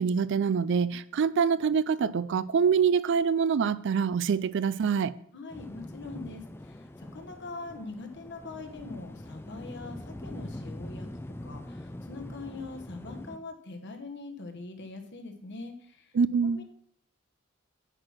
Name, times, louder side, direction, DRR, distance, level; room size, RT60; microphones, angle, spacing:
voice 1, 0.0-5.1 16.1-16.6, right 6 dB, 60° right, 0.4 m, -25 dB
voice 2, 5.3-11.1 11.4-16.1 16.4-16.6, left 3 dB, 55° left, 1.3 m, -42 dB
sound 1, 5.5-13.4, left 1 dB, 10° left, 0.4 m, -43 dB
9.8 x 4.5 x 5.9 m
head